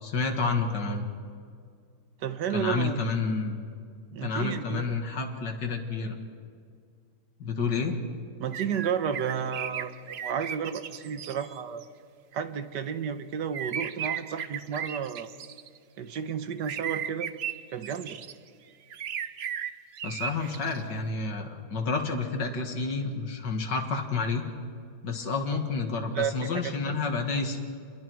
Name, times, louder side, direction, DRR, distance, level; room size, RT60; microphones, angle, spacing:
voice 1, 0.0-1.0 2.5-3.6 4.2-6.2 7.4-8.0 20.0-24.4 25.0-27.6, left 4 dB, 90° left, 3 dB, 2.4 m, -29 dB
voice 2, 2.2-3.1 4.1-5.0 8.4-11.8 12.3-15.3 16.0-17.3 17.7-18.2 26.1-26.9, right 7 dB, 80° right, 10 dB, 1.7 m, -32 dB
sound 1, 8.5-11.8 13.5-15.8 16.6-18.3 18.9-20.8, right 9 dB, 60° right, 0.7 m, -36 dB
29.5 x 22.0 x 4.7 m, 2.3 s
omnidirectional pair, 1.8 m